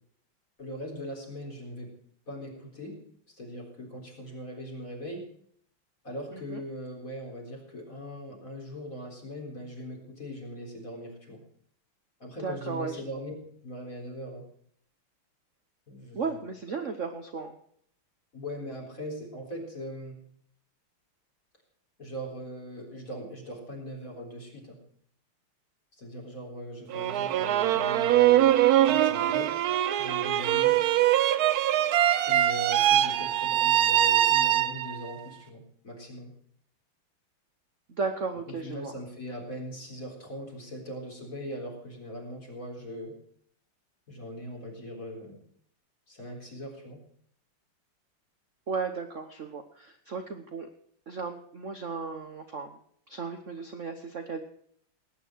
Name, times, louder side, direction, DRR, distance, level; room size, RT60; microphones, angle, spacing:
voice 1, 0.6-1.9 2.3-3.0 3.3-5.3 6.0-11.4 12.2-13.4 13.6-14.4 15.9-16.4 18.3-20.2 22.0-24.8 26.0-28.6 28.8-29.6 30.0-30.8 32.3-36.3 38.5-43.2 44.1-45.4 46.1-47.0, equal, 35° left, 0 dB, 4.3 m, -40 dB
voice 2, 12.4-13.0 16.1-17.6 37.9-38.9 48.7-50.7 51.1-52.8 53.1-54.4, right 5 dB, 45° right, 6 dB, 1.1 m, -35 dB
sound 1, 26.9-35.1, right 12 dB, 75° right, 0.9 m, -23 dB
18.5 x 9.4 x 4.6 m, 0.63 s
omnidirectional pair, 2.4 m